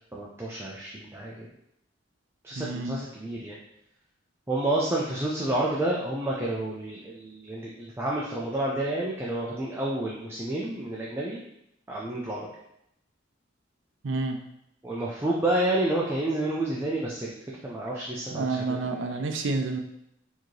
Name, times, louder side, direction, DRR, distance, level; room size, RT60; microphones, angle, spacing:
voice 1, 0.1-1.5 2.4-3.6 4.5-11.4 11.9-12.5 14.8-17.4 17.6-19.0, right 1 dB, 10° right, -5 dB, 0.5 m, -29 dB
voice 2, 2.6-3.0 14.0-14.4 18.3-19.8, right 3 dB, 65° right, 5 dB, 0.5 m, -29 dB
4.5 x 2.9 x 3.1 m, 0.78 s
head